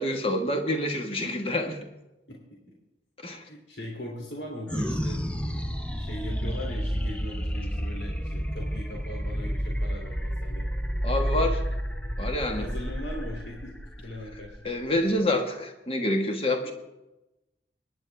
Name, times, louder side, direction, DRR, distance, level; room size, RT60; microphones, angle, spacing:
voice 1, 0.0-1.8 3.2-3.4 11.0-11.6 12.2-12.7 14.6-16.7, left 1 dB, 30° left, 4 dB, 1.5 m, -27 dB
voice 2, 3.5-10.7 12.6-14.6, left 1 dB, 85° left, -2 dB, 2.9 m, -39 dB
sound 1, 4.7-15.4, equal, 5° left, 0.6 m, -30 dB
22.0 x 10.5 x 3.4 m, 0.97 s
head